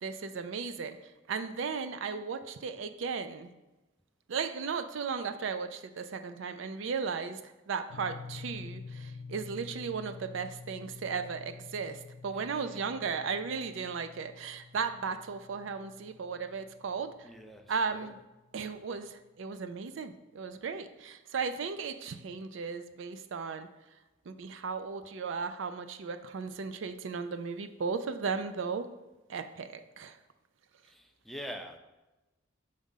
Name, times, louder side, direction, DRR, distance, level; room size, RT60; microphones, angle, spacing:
voice 1, 0.0-3.5 4.3-17.3 17.7-18.2 18.5-23.7 24.3-28.9 29.3-30.2, right 5 dB, 70° right, 0.4 m, -36 dB
sound 1, 7.9-18.0, left 4 dB, 75° left, 0.5 m, -48 dB
voice 2, 17.2-18.1 30.9-31.8, equal, ahead, 0.4 m, -44 dB
6.4 x 3.6 x 5.5 m
head